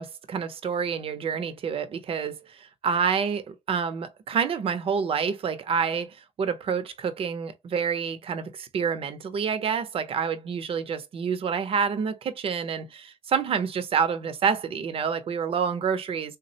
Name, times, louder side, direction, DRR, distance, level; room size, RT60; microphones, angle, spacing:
voice 1, 0.0-16.4, right 6 dB, 55° right, 0.5 m, -28 dB
3.5 x 2.0 x 2.7 m
cardioid pair, 95°, 11 cm